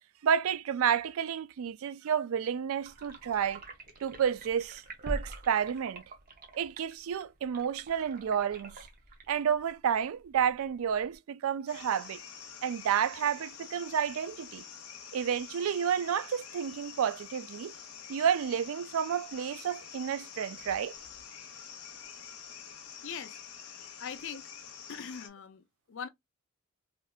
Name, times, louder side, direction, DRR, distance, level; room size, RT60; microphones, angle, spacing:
voice 1, 0.2-3.6 4.0-6.0 6.5-8.9 9.3-12.2 12.6-14.6 15.1-17.7 18.1-21.0, right 8 dB, 65° right, 0.3 m, -30 dB
sound 1, 2.8-11.1, right 1 dB, 40° right, 0.7 m, -45 dB
sound 2, 11.7-25.3, left 7 dB, 85° left, 0.8 m, -47 dB
voice 2, 23.0-24.5 24.9-26.1, left 6 dB, 60° left, 0.4 m, -42 dB
3.4 x 2.7 x 2.3 m
head